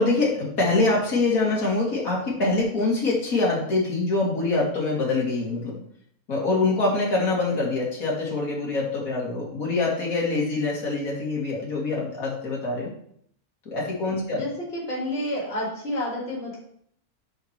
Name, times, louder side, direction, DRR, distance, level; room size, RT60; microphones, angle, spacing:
voice 1, 0.0-5.8 6.3-12.9 13.7-14.4, left 3 dB, 65° left, -4 dB, 2.6 m, -24 dB
voice 2, 14.3-16.6, left 1 dB, 40° left, -7 dB, 3.6 m, -30 dB
7.6 x 5.9 x 4.5 m, 0.65 s
omnidirectional pair, 1.6 m